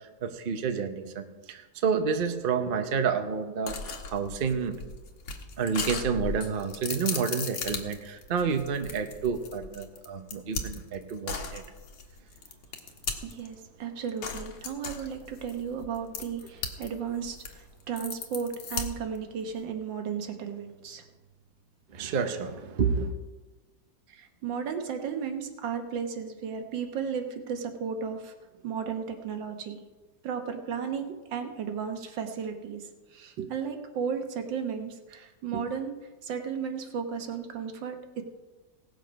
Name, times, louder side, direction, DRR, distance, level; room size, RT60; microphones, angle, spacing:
voice 1, 0.2-4.8 5.6-11.6 21.9-23.1, right 6 dB, 45° right, 7 dB, 0.8 m, -29 dB
sound 1, 3.7-13.5 14.2-16.9 17.2-19.2, left 5 dB, 85° left, 1.8 m, -36 dB
voice 2, 13.2-21.0 24.1-28.3 28.6-29.8 30.2-32.8 33.1-35.9 36.2-38.2, right 6 dB, 85° right, 5 dB, 1.8 m, -34 dB
17.5 x 6.7 x 5.2 m, 1.2 s
omnidirectional pair, 2.0 m